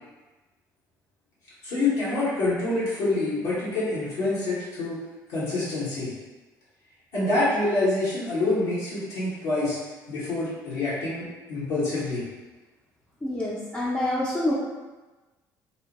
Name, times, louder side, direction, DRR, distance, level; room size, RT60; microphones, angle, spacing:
voice 1, 1.6-5.0 5.3-6.1 7.1-9.8 10.1-12.2, left 2 dB, 65° left, -11 dB, 1.0 m, -26 dB
voice 2, 13.2-14.5, left 1 dB, 15° left, -8 dB, 0.6 m, -27 dB
2.8 x 2.1 x 2.9 m, 1.2 s
figure-of-eight pair, 55°, 10 cm